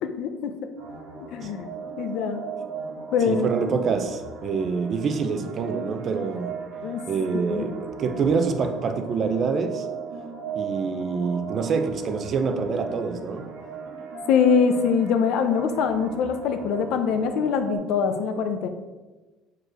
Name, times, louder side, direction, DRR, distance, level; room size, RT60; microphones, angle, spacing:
voice 1, 0.0-0.5 1.3-1.7 2.0-2.4 3.1-3.5 6.8-7.0 7.5-7.6 14.3-18.7, left 6 dB, 60° left, 7 dB, 0.7 m, -23 dB
sound 1, 0.8-17.8, right 5 dB, 90° right, 1.7 m, -37 dB
voice 2, 3.2-6.6 7.1-9.9 10.5-13.5, right 5 dB, 35° right, 7 dB, 0.6 m, -26 dB
5.0 x 4.7 x 6.2 m, 1.2 s
cardioid pair, 170°, 0 cm